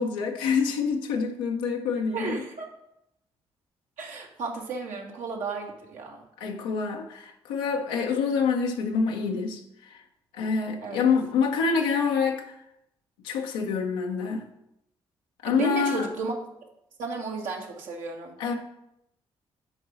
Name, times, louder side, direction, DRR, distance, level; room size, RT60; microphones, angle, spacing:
voice 1, 0.0-2.4 6.4-9.6 10.3-12.4 13.2-14.4 15.4-16.1 18.4-18.6, left 5 dB, 80° left, 0.7 m, -26 dB
voice 2, 2.1-2.7 4.0-6.2 10.8-11.1 15.4-16.3 17.0-18.4, right 4 dB, 70° right, 1.6 m, -33 dB
6.4 x 4.6 x 6.1 m
hypercardioid pair, 40°, 14 cm